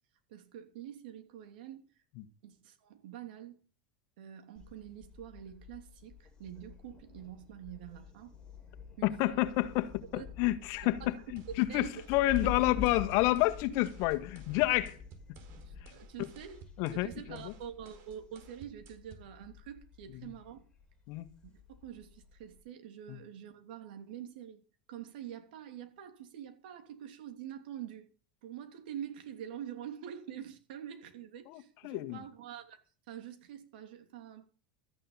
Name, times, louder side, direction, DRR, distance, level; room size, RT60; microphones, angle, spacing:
voice 1, 0.3-1.9 2.4-3.6 4.2-8.3 9.0-9.5 10.1-10.2 10.8-11.2 11.7-11.9 12.4-12.5 15.6-16.6 16.9-20.6 21.4-24.6 24.9-28.1 28.4-32.8 33.1-34.5, right 10 dB, 75° right, 3.0 m, -46 dB
Thunder, 4.6-22.6, left 7 dB, 15° left, 5.8 m, -47 dB
voice 2, 9.0-15.0 16.8-17.5 21.1-21.3 23.1-23.2 31.5-32.2, left 17 dB, 60° left, 1.7 m, -30 dB
sound 1, 11.4-19.3, right 6 dB, 55° right, 4.4 m, -56 dB
14.0 x 10.0 x 5.7 m
supercardioid pair, 110°, 5 cm